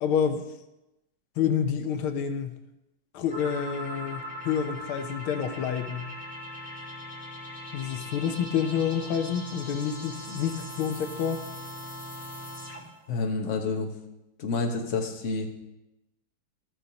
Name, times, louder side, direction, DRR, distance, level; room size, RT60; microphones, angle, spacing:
voice 1, 0.0-0.4 1.4-2.6 3.1-6.1 7.7-11.4, left 7 dB, 90° left, 8 dB, 1.6 m, -28 dB
sound 1, 3.3-13.0, left 1 dB, 5° right, 1.4 m, -40 dB
voice 2, 13.1-13.9 14.4-15.5, left 4 dB, 45° left, 3 dB, 1.2 m, -28 dB
13.0 x 9.1 x 2.9 m, 0.93 s
omnidirectional pair, 2.3 m